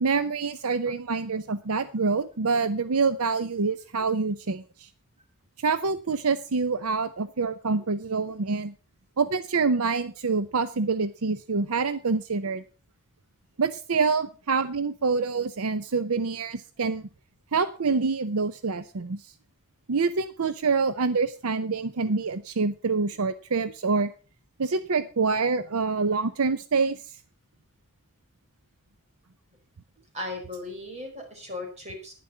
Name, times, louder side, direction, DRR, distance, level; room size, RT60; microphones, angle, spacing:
voice 1, 0.0-4.9 5.6-8.7 9.2-12.6 13.6-17.1 17.5-19.3 19.9-24.1 24.6-27.0, right 4 dB, 70° right, 13 dB, 0.7 m, -26 dB
voice 2, 30.1-32.2, left 2 dB, 30° right, 2 dB, 4.6 m, -37 dB
11.0 x 10.0 x 5.6 m, 0.35 s
head